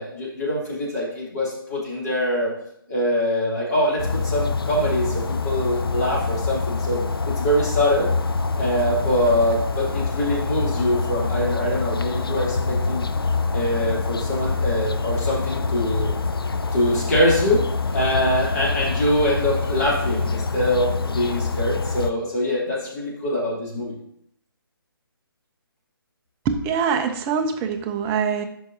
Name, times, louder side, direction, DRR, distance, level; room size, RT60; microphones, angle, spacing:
voice 1, 0.0-2.5 2.9-7.0 7.4-8.1 8.6-13.0 13.5-16.1 16.7-17.6 17.9-24.0, equal, 45° left, -5 dB, 3.1 m, -23 dB
sound 1, 4.0-22.1, left 4 dB, 75° left, 0.5 m, -25 dB
voice 2, 26.4-28.4, right 6 dB, 15° right, 6 dB, 0.5 m, -24 dB
11.0 x 5.5 x 2.7 m, 0.72 s
figure-of-eight pair, 140°, 12 cm